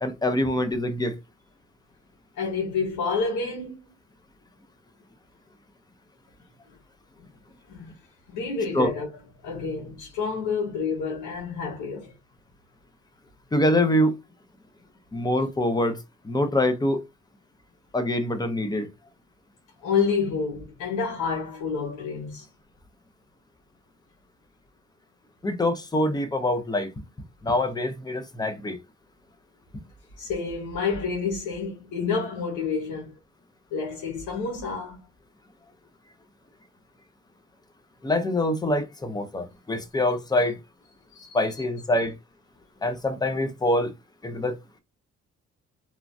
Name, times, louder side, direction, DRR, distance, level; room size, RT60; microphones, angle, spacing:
voice 1, 0.0-1.2 8.7-8.9 13.5-14.1 15.1-16.0 16.2-17.0 17.9-18.9 25.4-26.9 27.4-28.8 38.0-40.6 41.3-42.1 42.8-43.9 44.2-44.6, left 1 dB, 15° left, 0.6 m, -24 dB
voice 2, 2.3-3.9 7.7-7.9 8.3-9.1 9.4-12.1 19.8-22.5 30.2-33.1 33.7-35.0 41.1-41.4, left 5 dB, 80° left, 1.0 m, -29 dB
3.0 x 2.2 x 2.6 m
cardioid pair, 90°, 30 cm